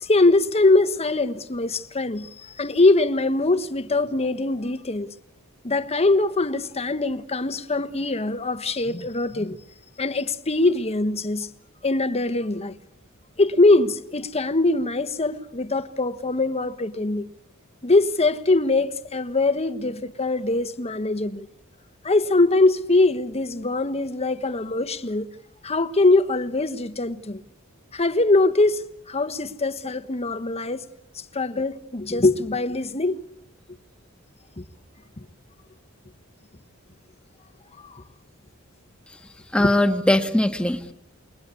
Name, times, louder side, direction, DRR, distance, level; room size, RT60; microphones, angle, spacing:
voice 1, 0.0-5.1 5.6-9.6 10.0-11.5 11.8-12.7 13.4-17.2 17.8-21.5 22.0-25.3 25.6-27.4 27.9-30.8 31.3-33.2 34.6-34.7 37.8-38.0 39.6-39.7, left 2 dB, 30° left, 1.2 m, -22 dB
voice 2, 39.5-40.9, left 1 dB, 5° left, 1.7 m, -20 dB
29.0 x 21.5 x 8.4 m
head